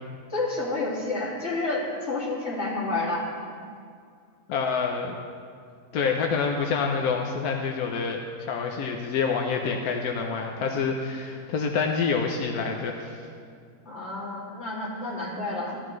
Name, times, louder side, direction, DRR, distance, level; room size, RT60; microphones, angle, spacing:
voice 1, 0.3-3.3 13.9-15.8, left 2 dB, 45° left, -6 dB, 2.6 m, -29 dB
voice 2, 4.5-5.2 5.9-8.2 8.5-13.2, left 5 dB, 90° left, 2 dB, 1.2 m, -27 dB
13.0 x 12.0 x 3.1 m, 2.2 s
omnidirectional pair, 1.6 m